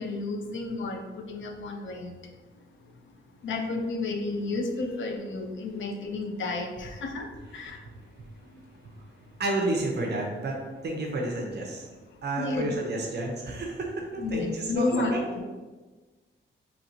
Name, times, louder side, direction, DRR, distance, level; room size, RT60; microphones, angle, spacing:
voice 1, 0.0-2.1 3.4-7.8 12.4-12.7 14.2-15.4, left 3 dB, 65° left, 5 dB, 0.5 m, -31 dB
voice 2, 9.4-11.9 12.2-15.2, right 2 dB, 55° right, 0 dB, 0.6 m, -31 dB
4.1 x 2.8 x 2.7 m, 1.3 s
wide cardioid pair, 170°, 21 cm